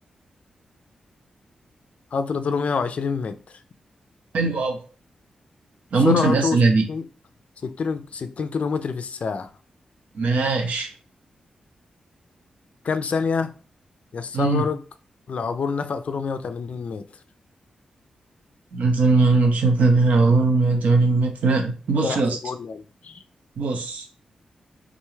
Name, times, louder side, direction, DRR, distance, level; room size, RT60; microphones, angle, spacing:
voice 1, 2.1-3.6 6.0-6.6 6.9-7.1 7.6-9.5 12.8-13.5 14.1-14.8 15.3-17.1 22.0-23.2, left 5 dB, 65° left, 0.4 m, -27 dB
voice 2, 4.3-4.8 5.9-6.8 10.2-10.9 14.3-14.6 18.7-22.4 23.6-24.0, right 3 dB, 75° right, 0.7 m, -20 dB
3.7 x 2.3 x 3.1 m
supercardioid pair, 40°, 2 cm